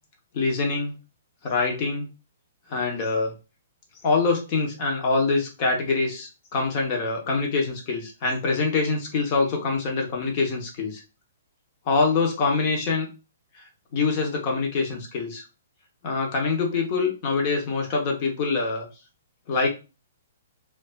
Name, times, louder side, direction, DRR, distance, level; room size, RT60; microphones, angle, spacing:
voice 1, 0.3-0.9 1.4-2.1 2.7-3.3 4.0-11.0 11.9-13.1 13.9-15.4 16.0-18.9 19.5-19.7, left 4 dB, 35° left, 2 dB, 0.8 m, -24 dB
2.5 x 2.2 x 2.2 m, 0.30 s
figure-of-eight pair, 120°, 0 cm